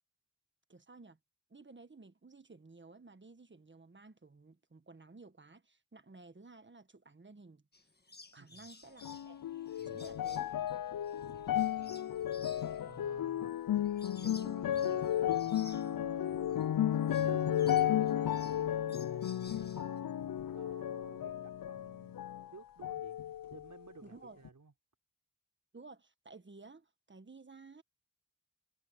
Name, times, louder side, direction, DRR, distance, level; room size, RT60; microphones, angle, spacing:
voice 1, 0.7-1.2 1.5-7.6 8.3-9.4 9.8-10.5 24.0-24.4 25.7-27.8, right 3 dB, 35° right, 1.5 m, -55 dB
sound 1, 7.7-16.7 17.0-20.0, left 3 dB, 30° left, 1.7 m, -57 dB
voice 2, 8.4-8.7 9.8-10.2 11.2-12.3 12.5-13.5 14.1-16.8 17.2-20.0 20.5-22.2 22.5-24.7, right 4 dB, 60° right, 5.3 m, -55 dB
sound 2, 9.0-22.5 22.8-23.8 24.4-24.5, left 11 dB, 75° left, 0.6 m, -34 dB
wide cardioid pair, 75°, 34 cm